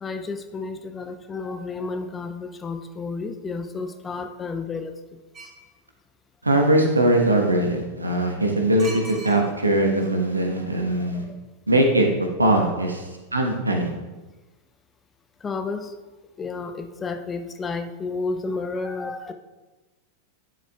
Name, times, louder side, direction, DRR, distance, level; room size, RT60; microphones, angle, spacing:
voice 1, 0.0-5.0 10.6-10.7 15.4-15.9 16.4-19.3, left 4 dB, 20° left, 8 dB, 0.5 m, -31 dB
sound 1, 5.3-5.7 8.8-9.7 10.0-10.1, right 2 dB, 25° right, 1.8 m, -39 dB
voice 2, 6.4-11.2 11.7-12.1 12.4-13.9, right 1 dB, 80° right, 2 dB, 1.1 m, -21 dB
11.0 x 7.3 x 2.3 m, 1.2 s
figure-of-eight pair, 90°, 0 cm